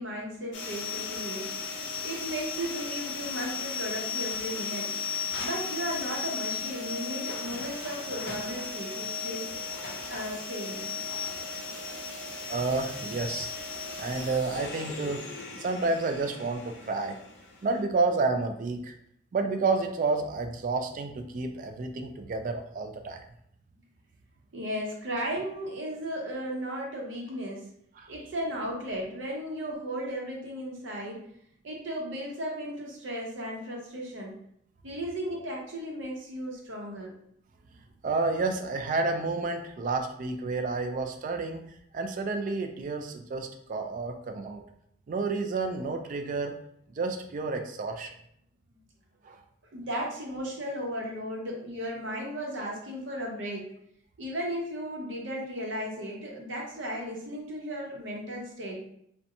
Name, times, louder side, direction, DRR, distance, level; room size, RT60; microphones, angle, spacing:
voice 1, 0.0-1.7 2.0-5.0 5.4-9.6 10.1-10.9 24.5-27.7 28.1-31.3 31.6-34.4 34.8-37.2 49.7-53.7 54.2-58.9, equal, 90° right, -1 dB, 0.7 m, -35 dB
sound 1, 0.5-17.8, left 5 dB, 75° left, 0.5 m, -36 dB
voice 2, 12.5-15.2 15.6-17.2 17.6-19.0 19.3-23.2 28.0-28.1 38.0-41.6 41.9-44.6 45.1-46.5 46.9-48.1 49.2-49.4, right 3 dB, 45° right, 5 dB, 0.3 m, -30 dB
2.7 x 2.2 x 2.5 m, 0.71 s
head